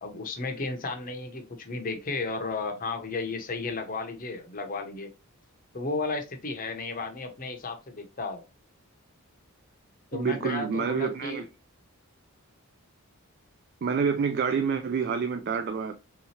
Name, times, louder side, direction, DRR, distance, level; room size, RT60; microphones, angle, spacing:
voice 1, 0.0-5.1 5.7-8.4 10.1-11.4, left 3 dB, 40° left, 0.7 m, -33 dB
voice 2, 10.1-11.5 13.8-15.9, right 6 dB, 45° right, 0.3 m, -28 dB
3.6 x 2.9 x 2.8 m
head